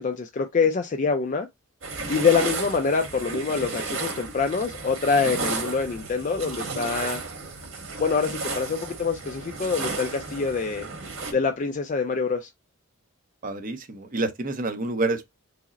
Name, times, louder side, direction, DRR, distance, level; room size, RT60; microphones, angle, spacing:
voice 1, 0.0-1.5 2.1-7.2 8.0-10.9 11.3-12.5, left 5 dB, 35° left, 0.3 m, -25 dB
sound 1, 1.8-11.3, right 3 dB, 65° right, 1.4 m, -33 dB
voice 2, 13.4-15.3, right 2 dB, 40° right, 0.6 m, -28 dB
4.7 x 2.0 x 4.0 m
head